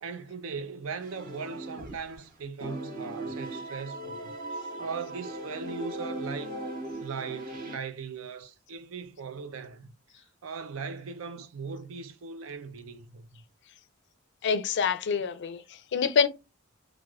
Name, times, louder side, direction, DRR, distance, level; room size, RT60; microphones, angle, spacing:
voice 1, 0.0-4.4 4.8-6.6 7.0-13.4, right 5 dB, 80° right, 0.5 m, -39 dB
sound 1, 1.0-2.3 2.6-7.8, right 1 dB, 45° right, 0.9 m, -38 dB
voice 2, 14.4-16.3, left 6 dB, 60° left, 0.4 m, -26 dB
3.3 x 2.4 x 2.3 m
head